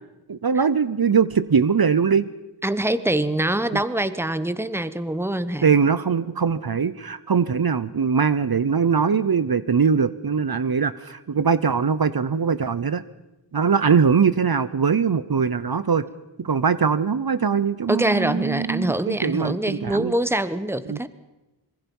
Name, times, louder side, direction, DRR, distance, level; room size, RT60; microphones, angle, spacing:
voice 1, 0.3-2.3 5.6-13.0 13.5-16.1 16.4-20.1 20.9-21.0, right 6 dB, 55° right, 15 dB, 0.7 m, -21 dB
voice 2, 2.6-5.7 17.9-21.1, right 1 dB, 5° right, 14 dB, 1.0 m, -24 dB
26.0 x 21.0 x 5.4 m, 1.0 s
wide cardioid pair, 60°, 44 cm